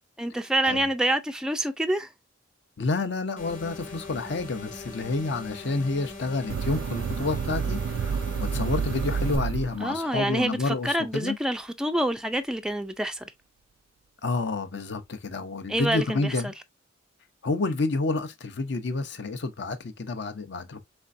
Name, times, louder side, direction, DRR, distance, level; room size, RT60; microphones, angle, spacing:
voice 1, 0.2-2.1 9.8-13.3 15.7-16.5, right 1 dB, 5° right, 0.3 m, -27 dB
voice 2, 2.8-11.4 14.2-16.5 17.4-20.9, left 3 dB, 60° left, 0.7 m, -29 dB
sound 1, 3.4-9.4, left 2 dB, 40° left, 1.1 m, -40 dB
sound 2, 6.5-10.2, right 6 dB, 85° right, 0.3 m, -29 dB
5.1 x 3.3 x 2.5 m
head